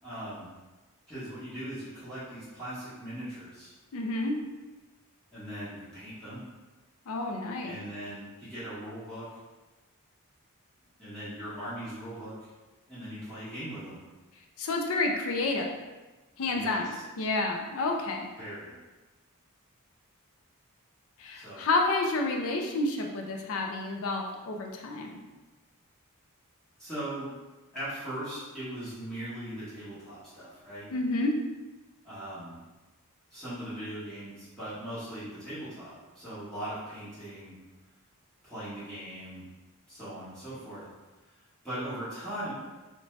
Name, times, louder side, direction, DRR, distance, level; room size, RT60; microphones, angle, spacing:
voice 1, 0.0-0.5 1.1-3.7 5.3-6.4 7.6-9.3 11.0-12.4 12.9-14.0 16.5-16.9 17.2-17.3 18.4-18.8 21.3-21.7 26.8-27.3 27.7-30.9 32.0-32.6 33.3-37.5 38.4-39.4 39.9-40.8 41.3-41.4 41.6-42.5, right 1 dB, 5° left, -14 dB, 1.0 m, -39 dB
voice 2, 3.9-4.4 7.1-7.7 14.6-15.7 16.4-18.3 21.2-25.2 30.9-31.3, left 2 dB, 65° left, 2 dB, 0.4 m, -29 dB
2.7 x 2.1 x 3.0 m, 1.2 s
head